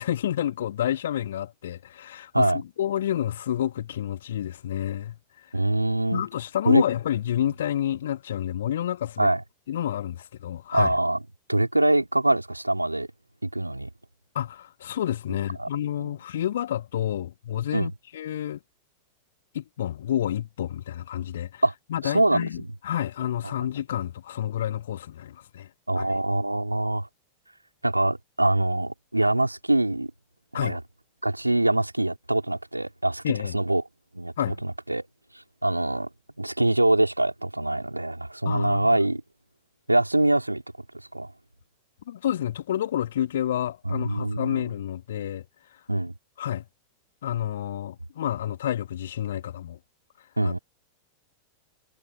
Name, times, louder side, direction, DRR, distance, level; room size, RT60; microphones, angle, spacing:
voice 1, 0.0-5.5 6.1-9.3 9.7-10.9 14.3-18.6 19.5-21.6 21.9-25.7 26.0-26.2 30.5-30.8 33.2-33.6 34.4-34.6 38.4-39.0 42.1-45.4 46.4-46.7 47.2-49.8 50.4-50.6, left 11 dB, 60° left, 2.3 m, -29 dB
voice 2, 5.5-6.2 6.7-6.8 9.2-9.4 10.7-11.2 11.5-13.1 13.4-13.9 15.6-15.7 16.0-16.1 17.7-17.9 21.6-21.7 22.0-22.5 23.4-23.5 25.9-27.1 27.8-30.1 30.5-30.8 31.2-33.2 33.5-33.8 34.1-35.0 35.6-36.1 36.4-39.2 39.9-40.6 41.1-41.3 43.8-44.8 45.9-46.2 50.4-50.6, right 1 dB, 85° right, 4.4 m, -24 dB
figure-of-eight pair, 90°, 0 cm